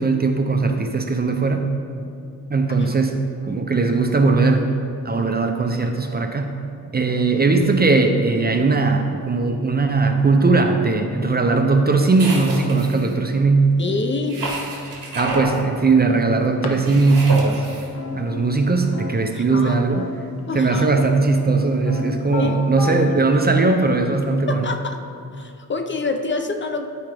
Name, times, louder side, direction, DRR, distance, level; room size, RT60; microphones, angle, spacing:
voice 1, 0.0-1.8 2.5-4.7 5.0-6.6 6.9-13.8 15.1-17.7 18.1-20.1 20.5-24.7, right 3 dB, 30° right, 4 dB, 0.4 m, -19 dB
sound 1, 12.2-13.1 14.3-15.6 16.8-17.9, right 2 dB, 60° right, 1.8 m, -28 dB
voice 2, 13.8-14.4 19.3-19.8 20.5-20.9 22.4-22.6 24.5-25.0 25.3-26.9, left 3 dB, 35° left, 5 dB, 0.5 m, -26 dB
sound 2, 16.6-16.7 17.0-19.5 19.9-20.4 20.9-23.2, left 4 dB, 75° left, 1.0 m, -33 dB
12.5 x 4.8 x 3.3 m, 2.5 s
wide cardioid pair, 145°, 36 cm